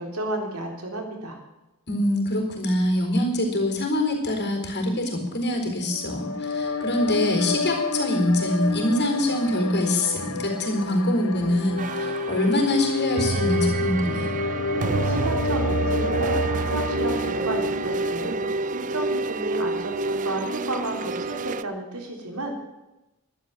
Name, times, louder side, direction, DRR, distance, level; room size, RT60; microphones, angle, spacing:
voice 1, 0.0-1.4 14.7-22.6, right 1 dB, 75° right, 2 dB, 3.7 m, -32 dB
voice 2, 1.9-14.3, left 1 dB, 50° left, 2 dB, 4.2 m, -24 dB
sound 1, 5.8-19.2, left 4 dB, 85° left, 1.1 m, -29 dB
sound 2, 11.4-21.6, right 3 dB, 35° right, 0.4 m, -28 dB
13.0 x 11.5 x 7.4 m, 1.0 s
head